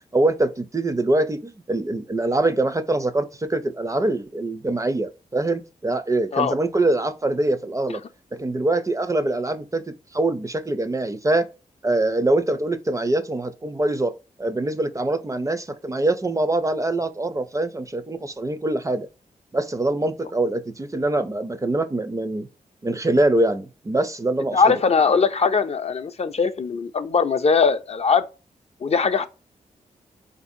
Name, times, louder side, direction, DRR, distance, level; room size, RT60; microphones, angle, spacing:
voice 1, 0.1-8.0 8.3-11.5 11.8-19.1 19.5-22.5 22.8-24.8, right 2 dB, 20° right, 0.4 m, -24 dB
voice 2, 24.5-28.2 28.8-29.3, left 5 dB, 45° left, 0.4 m, -20 dB
3.7 x 2.6 x 2.5 m
cardioid pair, 60°, 15 cm